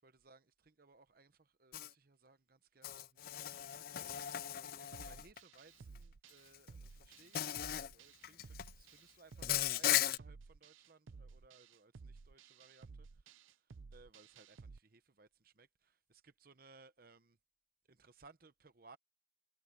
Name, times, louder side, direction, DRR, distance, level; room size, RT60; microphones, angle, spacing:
voice 1, 0.0-17.4 17.9-19.0, right 3 dB, 45° right, 0.9 m, -64 dB
Insect, 1.7-1.9 2.8-5.4 6.5-6.7 7.3-7.9 8.2-8.7 9.4-10.2, left 12 dB, 50° left, 0.4 m, -37 dB
sound 1, 4.9-14.8, right 4 dB, 80° right, 0.6 m, -55 dB
head